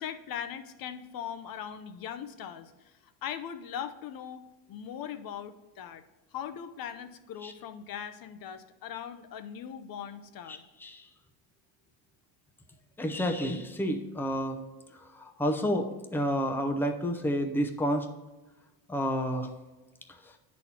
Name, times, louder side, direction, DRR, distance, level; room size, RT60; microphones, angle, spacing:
voice 1, 0.0-6.0 6.3-10.6, left 9 dB, 50° left, 10 dB, 0.8 m, -40 dB
voice 2, 10.5-11.1 13.0-14.6 15.0-18.1 18.9-19.5 20.2-20.3, equal, 5° left, 3 dB, 0.7 m, -30 dB
9.6 x 4.3 x 4.3 m, 1.2 s
cardioid pair, 115°, 45 cm